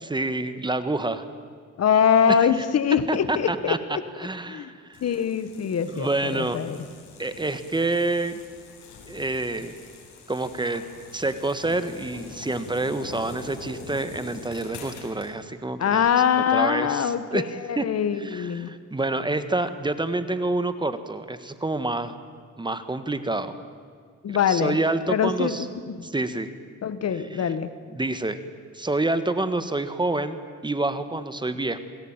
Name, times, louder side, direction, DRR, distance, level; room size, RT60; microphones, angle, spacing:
voice 1, 0.0-1.2 2.3-2.4 3.1-3.8 4.2-5.0 5.9-6.6 7.2-8.4 9.1-9.7 10.3-10.8 11.1-16.1 16.5-17.4 17.8-17.9 18.2-22.1 22.6-23.5 24.3-25.7 26.0-26.5 27.3-27.5 27.9-28.4 28.7-30.4 30.6-31.8, right 2 dB, 15° right, 11 dB, 1.6 m, -27 dB
voice 2, 1.8-4.0 4.5-4.7 5.0-6.8 15.8-18.7 24.2-24.8 25.1-26.1 26.8-27.7, left 8 dB, 55° left, 12 dB, 1.6 m, -23 dB
sound 1, 4.9-15.3, left 3 dB, 70° left, 6.9 m, -44 dB
28.0 x 19.5 x 9.0 m, 2.1 s
cardioid pair, 110°, 30 cm